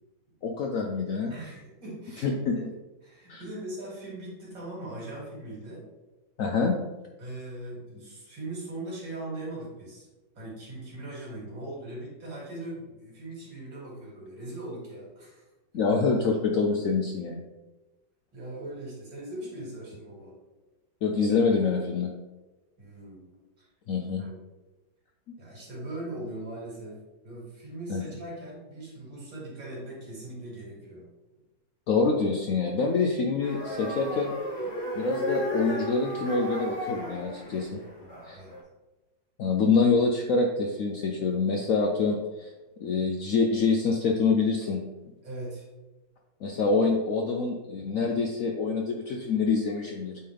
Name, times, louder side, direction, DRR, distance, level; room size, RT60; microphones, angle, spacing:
voice 1, 0.4-1.3 2.2-2.6 3.3-3.4 6.4-6.8 15.7-17.4 21.0-22.1 23.9-24.2 27.9-28.0 31.9-34.3 35.0-37.8 38.3-38.4 39.4-42.5 42.8-44.8 46.4-50.2, left 4 dB, 70° left, 2 dB, 0.8 m, -26 dB
voice 2, 1.3-2.7 3.0-5.9 7.2-10.1 10.3-15.4 15.9-16.0 18.3-20.3 22.8-23.3 23.6-23.7 24.2-24.3 25.4-27.0 27.2-31.1 38.0-38.5 45.2-45.7, right 1 dB, 75° right, -5 dB, 3.2 m, -40 dB
sound 1, 33.4-38.6, equal, 50° left, 2.3 m, -34 dB
8.4 x 3.8 x 3.3 m, 1.1 s
omnidirectional pair, 2.0 m